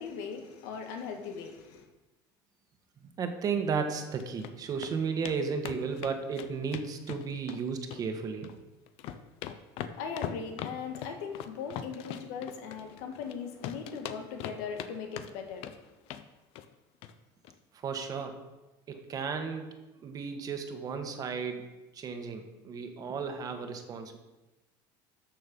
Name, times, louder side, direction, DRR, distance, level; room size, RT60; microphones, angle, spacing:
voice 1, 0.0-1.9 9.9-15.9, left 6 dB, 85° left, 1.9 m, -39 dB
voice 2, 3.0-8.5 17.7-18.4 18.9-21.6 21.9-24.2, right 5 dB, 35° right, 1.5 m, -34 dB
sound 1, 4.0-4.5 4.8-4.9 5.2-5.4 5.6-7.6 7.9-8.6 8.9-13.3 13.6-14.9 15.2-15.8 16.1-16.3 16.5-16.7 17.0-17.1 17.4-17.5, left 10 dB, 65° left, 0.8 m, -40 dB
13.0 x 6.7 x 5.4 m
cardioid pair, 135°, 11 cm